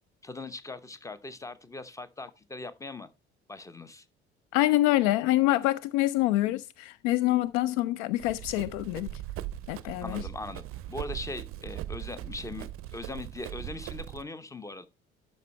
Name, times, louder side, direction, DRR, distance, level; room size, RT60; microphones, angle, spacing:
voice 1, 0.2-3.1 3.5-4.0 10.0-14.9, left 2 dB, 10° left, 0.9 m, -40 dB
voice 2, 4.5-9.1 9.7-10.2, left 16 dB, 55° left, 0.4 m, -26 dB
Run, 8.2-14.2, right 13 dB, 45° right, 0.6 m, -39 dB
12.0 x 5.3 x 3.2 m
figure-of-eight pair, 50°, 32 cm